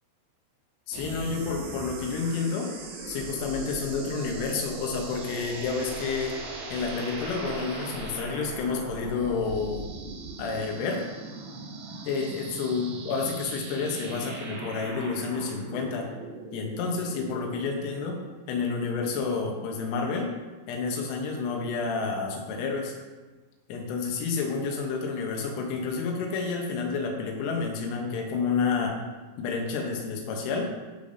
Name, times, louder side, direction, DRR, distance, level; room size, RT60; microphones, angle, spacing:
voice 1, 0.9-2.7 3.1-6.3 6.7-9.9 10.4-11.0 12.1-16.1 16.5-18.2 18.5-20.3 20.7-22.9 23.7-29.0 29.4-30.7, left 4 dB, 80° left, 1 dB, 3.4 m, -30 dB
sound 1, 0.9-17.7, right 2 dB, 85° right, 4.4 m, -39 dB
13.5 x 5.1 x 2.7 m, 1.3 s
omnidirectional pair, 5.6 m